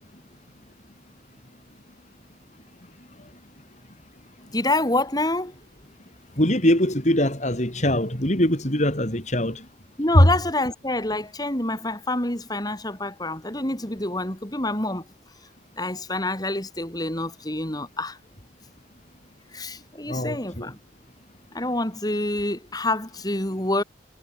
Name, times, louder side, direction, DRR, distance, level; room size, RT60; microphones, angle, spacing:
voice 1, 4.5-5.5 10.0-15.0 15.8-18.2 19.5-20.8 21.5-23.8, left 2 dB, 20° left, 6.7 m, -27 dB
voice 2, 6.4-9.6 10.1-10.2 20.1-20.7, left 1 dB, 40° left, 6.5 m, -21 dB
head